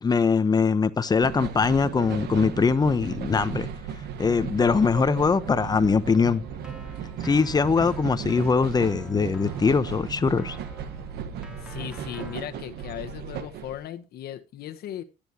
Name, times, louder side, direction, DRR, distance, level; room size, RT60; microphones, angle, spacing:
voice 1, 0.0-3.7 4.2-6.4 7.2-10.6, left 5 dB, 25° left, 0.9 m, -22 dB
sound 1, 1.2-13.8, right 8 dB, 75° right, 1.2 m, -36 dB
Keyboard (musical), 5.8-12.4, equal, 5° right, 2.9 m, -48 dB
voice 2, 11.6-15.0, left 11 dB, 70° left, 1.3 m, -37 dB
14.5 x 10.5 x 2.9 m
cardioid pair, 110°, 17 cm